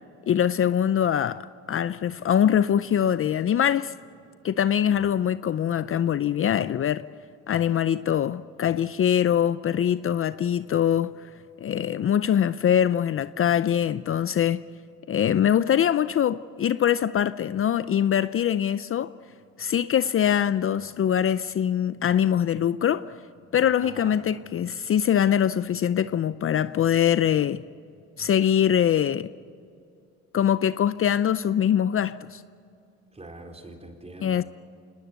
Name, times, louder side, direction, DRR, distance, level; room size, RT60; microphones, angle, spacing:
voice 1, 0.3-3.9 4.4-7.0 7.5-11.1 11.6-14.6 15.1-19.1 19.6-23.1 23.5-27.6 28.2-29.3 30.3-32.4 34.2-34.4, left 9 dB, 45° left, 0.6 m, -23 dB
voice 2, 23.8-24.2 33.1-34.4, right 2 dB, 20° right, 4.1 m, -43 dB
27.0 x 20.0 x 8.2 m
cardioid pair, 90°, 30 cm